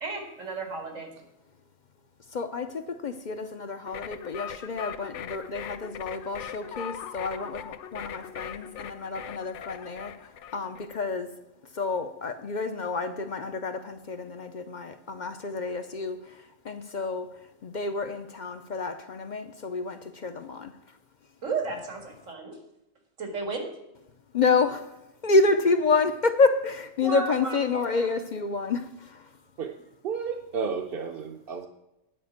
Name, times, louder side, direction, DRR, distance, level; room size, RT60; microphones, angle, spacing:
voice 1, 0.0-1.1 21.4-22.6 23.2-23.7 27.0-27.8, right 3 dB, 90° right, 3 dB, 2.3 m, -33 dB
voice 2, 2.3-11.3 11.7-20.7 24.3-24.9 25.2-29.3, left 3 dB, 50° left, 9 dB, 0.6 m, -28 dB
sound 1, 3.9-11.0, left 9 dB, 70° left, 0.9 m, -40 dB
voice 3, 30.0-31.7, right 6 dB, 55° right, 2 dB, 0.8 m, -32 dB
9.9 x 5.1 x 8.1 m, 0.93 s
omnidirectional pair, 1.3 m